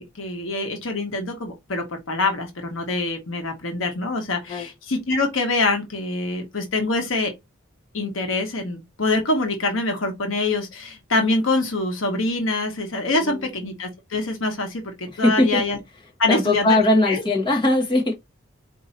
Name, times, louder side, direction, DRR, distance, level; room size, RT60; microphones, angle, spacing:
voice 1, 0.2-7.3 7.9-15.8 16.2-17.2, left 2 dB, 70° left, 1.1 m, -25 dB
voice 2, 15.1-15.6 16.3-18.3, left 1 dB, 25° left, 1.0 m, -20 dB
4.6 x 2.7 x 4.1 m
head